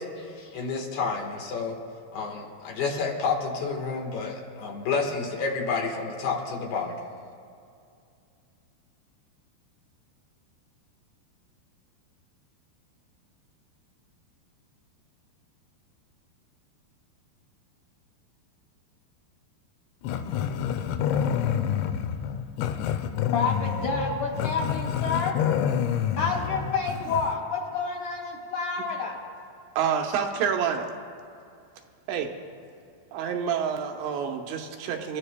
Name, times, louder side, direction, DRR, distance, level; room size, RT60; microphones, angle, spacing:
voice 1, 0.2-1.8 2.1-7.0, left 4 dB, 65° left, 0 dB, 3.0 m, -30 dB
Growling, 20.0-27.4, left 8 dB, 85° left, 3.0 m, -28 dB
voice 2, 23.3-25.4 26.2-29.2, left 4 dB, 50° left, -2 dB, 2.9 m, -29 dB
voice 3, 29.8-30.9 32.1-32.3 33.1-35.2, right 7 dB, 80° right, 2 dB, 3.1 m, -28 dB
29.0 x 13.5 x 2.2 m, 2.4 s
omnidirectional pair, 5.1 m